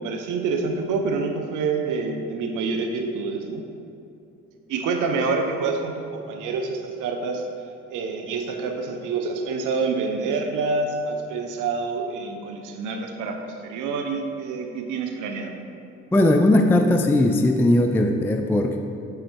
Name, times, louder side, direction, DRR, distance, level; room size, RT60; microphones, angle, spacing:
voice 1, 0.0-3.7 4.7-7.5 7.9-15.6, right 4 dB, 85° right, 4 dB, 0.7 m, -27 dB
voice 2, 16.1-18.8, left 1 dB, 10° left, 4 dB, 0.3 m, -18 dB
7.7 x 4.4 x 4.5 m, 2.7 s
cardioid pair, 90°, 30 cm